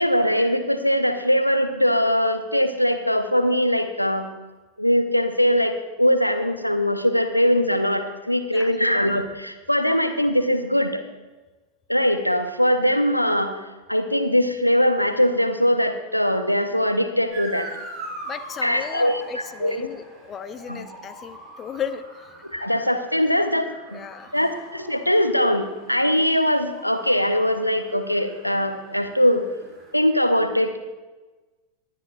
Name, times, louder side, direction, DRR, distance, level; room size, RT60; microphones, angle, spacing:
voice 1, 0.0-4.3 4.8-11.0 11.9-13.6 13.9-17.7 18.6-19.8 20.7-20.8 22.4-24.0 24.3-29.4 29.9-30.8, equal, 90° left, 8 dB, 0.7 m, -21 dB
Motor vehicle (road) / Siren, 17.3-29.9, right 2 dB, 25° right, 3.0 m, -42 dB
voice 2, 18.2-22.3 23.9-24.3, left 8 dB, 25° left, 11 dB, 0.6 m, -35 dB
20.5 x 10.5 x 2.3 m, 1.2 s
figure-of-eight pair, 90°, 0 cm